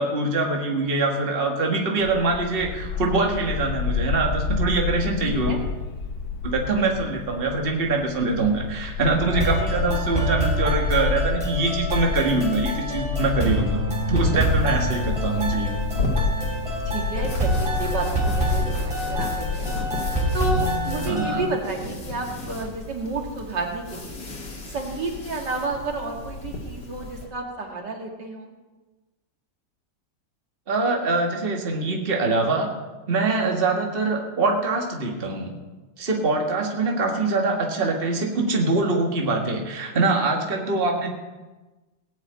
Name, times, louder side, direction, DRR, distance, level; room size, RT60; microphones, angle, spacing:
voice 1, 0.0-5.6 6.4-13.8 14.1-15.7 21.0-21.5 30.7-32.7 33.1-35.5 36.0-41.1, right 3 dB, 35° right, 1 dB, 1.8 m, -24 dB
Bark, 2.0-21.1, left 5 dB, 60° left, 1.5 m, -29 dB
voice 2, 5.2-5.6 16.9-19.7 20.3-24.2 24.7-28.5 36.6-36.7, right 3 dB, 75° right, 1 dB, 2.7 m, -31 dB
sound 1, 9.3-21.4, right 1 dB, 15° right, 3.0 m, -27 dB
sound 2, 14.3-27.3, left 1 dB, 80° left, 3.0 m, -35 dB
18.0 x 6.4 x 8.8 m, 1.2 s
omnidirectional pair, 1.9 m